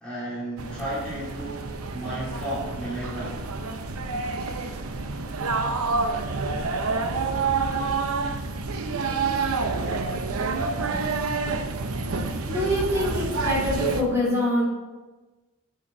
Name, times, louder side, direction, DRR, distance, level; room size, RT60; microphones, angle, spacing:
voice 1, 0.0-3.5, right 1 dB, 5° left, -11 dB, 2.2 m, -33 dB
sound 1, 0.6-14.0, right 4 dB, 80° right, 0.7 m, -28 dB
voice 2, 12.5-14.6, left 1 dB, 15° right, -5 dB, 2.8 m, -24 dB
6.8 x 6.1 x 6.1 m, 1.2 s
head